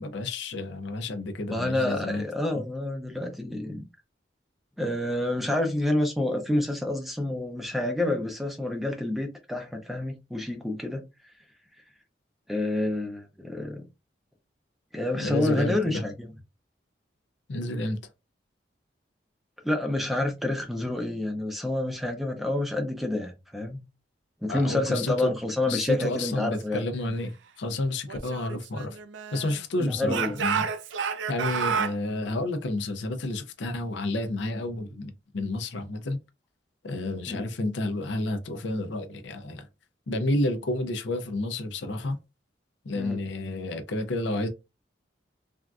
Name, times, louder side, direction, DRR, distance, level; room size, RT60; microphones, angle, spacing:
voice 1, 0.0-2.2 2.5-2.6 15.2-16.0 17.5-18.0 24.5-25.3 25.7-29.0 29.3-30.7 31.3-36.2 36.8-39.7 40.1-42.2 42.8-44.5, left 2 dB, 80° left, 0.5 m, -30 dB
voice 2, 1.5-3.8 4.8-11.1 12.5-13.8 14.9-16.3 19.6-23.8 24.4-26.8 29.8-30.4 37.3-37.5 42.9-43.2, left 1 dB, ahead, 0.5 m, -28 dB
Speech / Shout, 28.1-29.6 30.1-32.0, right 6 dB, 90° right, 0.4 m, -30 dB
3.5 x 2.5 x 2.3 m
head